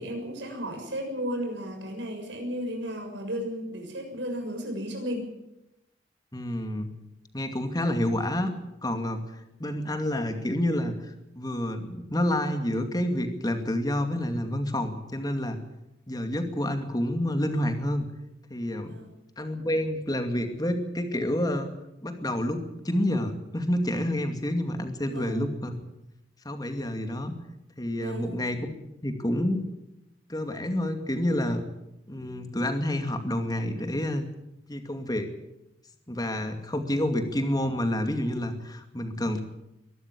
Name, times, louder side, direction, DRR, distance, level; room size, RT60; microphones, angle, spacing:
voice 1, 0.0-5.3 9.5-9.6 18.9-19.2 25.0-25.5 28.0-28.4, equal, 75° right, 4 dB, 6.8 m, -34 dB
voice 2, 6.3-6.9 7.3-8.5 8.8-9.2 9.6-15.6 16.1-18.1 18.5-18.9 19.4-21.7 22.0-25.7 26.4-27.3 27.8-28.6 29.0-29.6 30.3-31.7 32.1-34.3 34.7-35.3 36.1-39.4, left 1 dB, 20° left, 7 dB, 2.4 m, -28 dB
23.0 x 13.0 x 9.9 m, 0.88 s
head